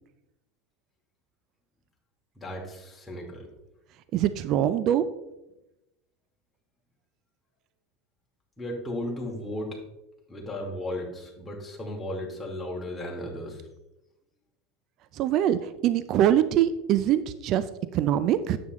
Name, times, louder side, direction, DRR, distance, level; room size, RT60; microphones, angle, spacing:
voice 1, 2.4-3.5 8.6-9.8 10.3-13.6, left 1 dB, 10° left, -2 dB, 2.6 m, -35 dB
voice 2, 4.1-5.1 15.1-18.6, right 11 dB, 50° right, 13 dB, 0.5 m, -24 dB
9.4 x 7.8 x 3.1 m, 0.95 s
hypercardioid pair, 100°, 0 cm